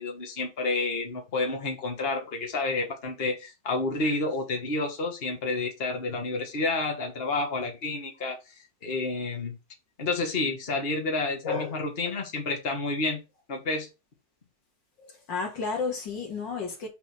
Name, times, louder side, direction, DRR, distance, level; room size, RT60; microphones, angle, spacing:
voice 1, 0.0-9.6 10.0-13.2 13.5-13.9, left 3 dB, 35° left, 1.9 m, -30 dB
voice 2, 11.4-11.9 15.0-16.9, left 4 dB, 75° left, 2.7 m, -32 dB
6.1 x 4.2 x 6.2 m
omnidirectional pair, 2.0 m